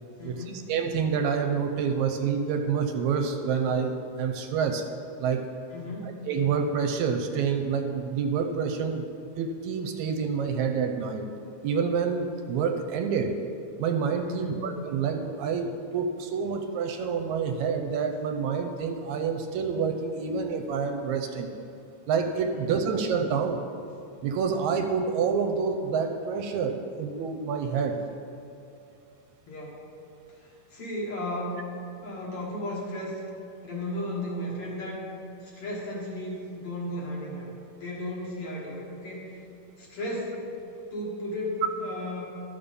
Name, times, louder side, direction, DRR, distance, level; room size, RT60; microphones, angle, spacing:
voice 1, 0.2-0.6 5.7-6.1 14.3-14.7 22.5-22.7 29.5-29.8 30.4-31.6 32.0-33.2 33.6-35.0 35.4-39.3 39.8-40.4 40.9-42.3, left 1 dB, 55° left, -4 dB, 2.4 m, -34 dB
voice 2, 0.7-4.9 5.2-5.4 6.3-9.1 9.4-11.3 11.6-13.3 13.8-21.5 22.1-23.6 24.2-28.0, right 6 dB, 80° right, 5 dB, 2.0 m, -28 dB
12.5 x 6.7 x 5.3 m, 2.7 s
omnidirectional pair, 3.4 m